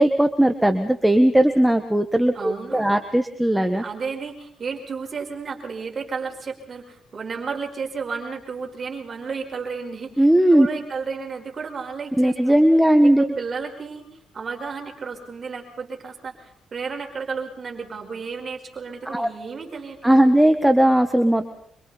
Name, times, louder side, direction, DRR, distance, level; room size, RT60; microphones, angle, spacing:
voice 1, 0.0-3.8 10.2-10.7 12.2-13.3 19.0-19.3 20.0-21.5, right 1 dB, 5° right, 7 dB, 1.6 m, -17 dB
voice 2, 2.3-2.9 3.8-12.7 13.0-14.0 14.3-20.3, right 5 dB, 40° right, 3 dB, 4.9 m, -33 dB
26.5 x 25.0 x 4.3 m, 0.65 s
cardioid pair, 90°, 0 cm